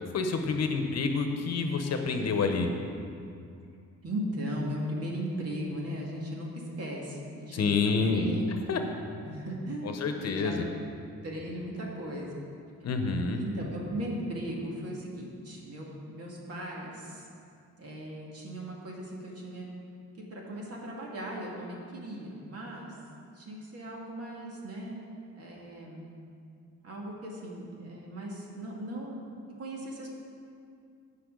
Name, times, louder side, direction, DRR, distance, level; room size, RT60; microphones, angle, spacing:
voice 1, 0.1-2.7 7.5-8.3 8.7-8.8 9.8-10.6 12.8-13.4, left 4 dB, 55° left, 5 dB, 1.0 m, -28 dB
voice 2, 4.0-7.7 8.1-8.5 9.2-10.5 11.2-12.4 13.3-17.3 17.8-19.7 20.3-23.0 23.3-25.0 25.3-26.0 26.8-29.3 29.6-30.1, equal, 55° right, -2 dB, 2.3 m, -37 dB
16.0 x 5.6 x 3.9 m, 2.4 s
cardioid pair, 90°, 30 cm